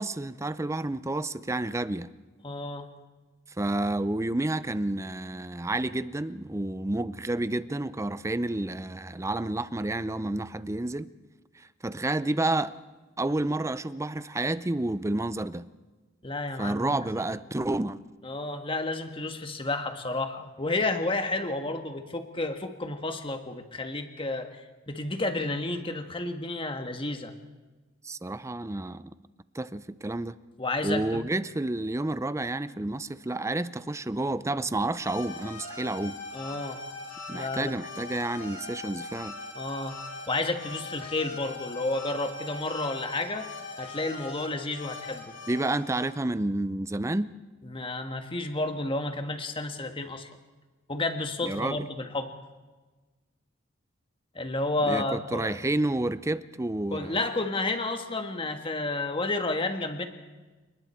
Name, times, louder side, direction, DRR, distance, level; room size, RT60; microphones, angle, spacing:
voice 1, 0.0-2.1 3.6-11.1 11.6-12.8 13.2-15.7 16.6-18.0 28.0-29.1 29.5-30.4 30.8-36.2 37.3-39.4 45.5-47.3 51.4-51.9 54.9-57.2, right 2 dB, 15° right, 0.5 m, -30 dB
voice 2, 2.4-2.9 16.2-17.2 18.2-27.3 30.6-31.2 36.3-36.8 37.3-37.7 39.5-40.0 40.3-43.5 43.8-45.3 47.6-50.3 50.9-52.3 54.3-55.6 56.9-60.1, left 2 dB, 25° left, 1.5 m, -31 dB
sound 1, 34.9-46.0, left 3 dB, 70° left, 5.6 m, -41 dB
29.5 x 20.0 x 4.5 m
head